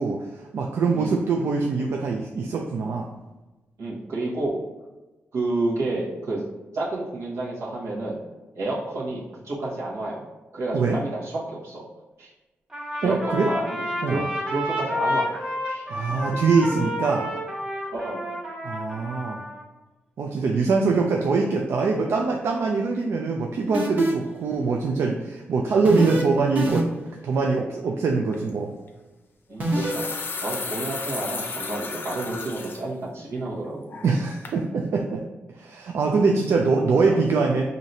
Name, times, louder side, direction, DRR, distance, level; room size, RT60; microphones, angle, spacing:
voice 1, 0.0-3.1 10.7-11.0 13.0-13.5 14.0-14.2 15.9-17.3 18.6-19.4 20.2-26.9 27.2-28.7 34.0-35.2 35.5-37.6, right 4 dB, 70° right, 1 dB, 0.4 m, -23 dB
voice 2, 3.8-4.6 5.3-6.4 6.7-8.2 8.5-10.2 10.5-11.8 12.2-12.3 13.0-13.8 14.1-15.3 15.7-15.9 17.9-18.3 29.5-34.0 37.1-37.2, right 2 dB, 90° right, -6 dB, 1.2 m, -30 dB
Trumpet, 12.7-19.6, left 1 dB, 20° right, 1.4 m, -30 dB
sound 1, 23.7-24.3 25.9-26.2 26.6-27.1 29.6-29.9, right 1 dB, 40° right, 1.0 m, -24 dB
sound 2, 28.3-28.5 29.5-32.8 33.3-33.4 33.9-34.2 34.5-34.6, left 4 dB, 50° left, 0.5 m, -33 dB
4.9 x 2.7 x 2.8 m, 1.1 s
cardioid pair, 95°, 5 cm